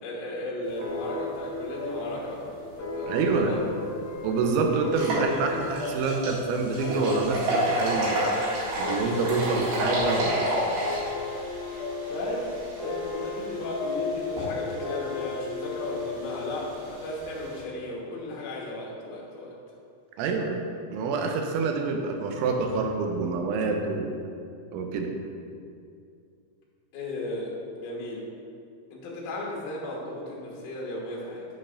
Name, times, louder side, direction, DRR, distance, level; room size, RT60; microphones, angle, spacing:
voice 1, 0.0-3.6 12.1-12.5 12.8-19.5 26.9-28.3 28.9-31.5, left 1 dB, 85° left, -4 dB, 1.7 m, -35 dB
sound 1, 0.8-17.9, left 3 dB, 65° left, 1.3 m, -35 dB
voice 2, 3.1-3.5 4.2-8.2 8.8-10.4 20.2-20.6 20.9-24.1 24.7-25.1, right 4 dB, 80° right, 3 dB, 3.0 m, -27 dB
sound 2, 3.6-3.7 4.1-4.2 4.8-17.6, right 1 dB, 65° right, 4.0 m, -32 dB
9.1 x 7.4 x 2.5 m, 2.4 s
omnidirectional pair, 5.6 m